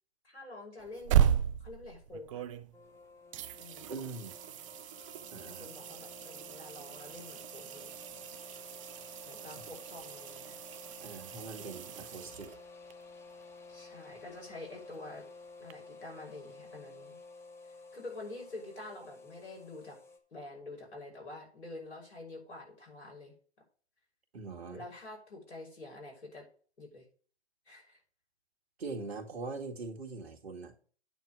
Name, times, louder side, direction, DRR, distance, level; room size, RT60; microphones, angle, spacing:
voice 1, 0.2-1.3 1.6-2.5 3.6-4.1 5.4-8.0 9.3-10.6 13.7-15.2 15.6-17.2 17.6-20.0 20.3-23.4 24.7-26.5 26.8-27.1 27.7-28.0, left 2 dB, 75° left, 6.1 m, -47 dB
sound 1, 0.8-3.0 3.3-12.9 15.7-15.8, right 10 dB, 30° right, 0.5 m, -35 dB
sound 2, 2.7-20.2, left 3 dB, 10° left, 0.9 m, -52 dB
voice 2, 3.9-4.4 5.3-5.7 11.0-12.5 24.3-24.8 28.8-30.7, right 3 dB, 65° right, 2.1 m, -42 dB
9.1 x 4.6 x 7.6 m
figure-of-eight pair, 125°, 33 cm